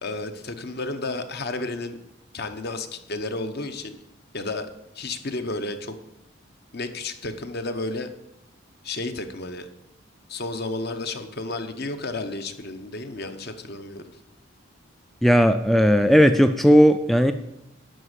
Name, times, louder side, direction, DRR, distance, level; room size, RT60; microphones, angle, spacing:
voice 1, 0.0-2.0 2.3-4.0 4.3-4.7 4.9-6.0 6.7-8.1 8.8-9.7 10.3-14.1, left 2 dB, 50° left, 8 dB, 0.9 m, -32 dB
voice 2, 15.2-17.3, equal, ahead, 9 dB, 0.3 m, -16 dB
11.5 x 5.0 x 8.1 m, 0.84 s
head